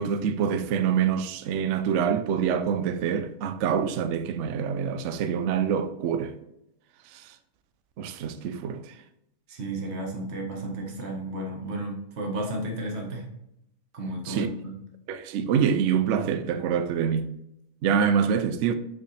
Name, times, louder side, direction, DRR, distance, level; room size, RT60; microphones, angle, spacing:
voice 1, 0.0-6.3 7.1-7.3 8.0-9.0 14.3-14.5 15.1-17.3 17.8-18.7, right 7 dB, 65° right, 0.8 m, -26 dB
voice 2, 9.5-13.3 13.9-14.8, right 1 dB, 50° right, 1.4 m, -33 dB
6.4 x 5.5 x 3.2 m
omnidirectional pair, 1.5 m